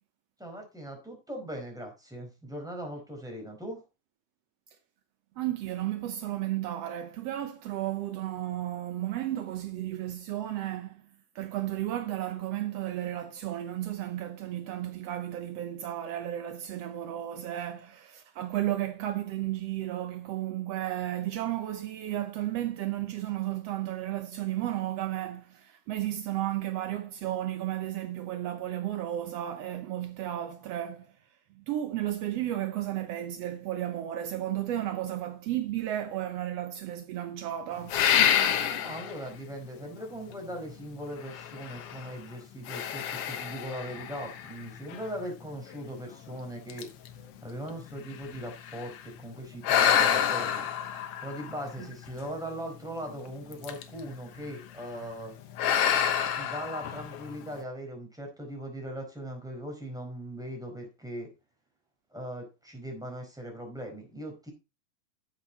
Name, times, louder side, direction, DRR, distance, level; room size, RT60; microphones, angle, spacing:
voice 1, 0.4-3.8 38.7-46.9 47.4-50.7 51.2-55.4 56.4-61.3 62.1-64.5, equal, ahead, 4.4 m, -39 dB
voice 2, 5.4-11.0 11.3-31.2 31.5-38.0 51.8-51.9, right 13 dB, 85° right, 1.4 m, -33 dB
sound 1, 37.9-39.2 39.8-39.9 41.3-42.1 42.7-45.0 45.7-45.8 46.3-46.4 46.7-49.0 49.6-52.3 53.5-54.0 54.4-54.7 55.6-57.4, left 9 dB, 65° left, 1.5 m, -28 dB
11.5 x 7.8 x 4.1 m
omnidirectional pair, 4.0 m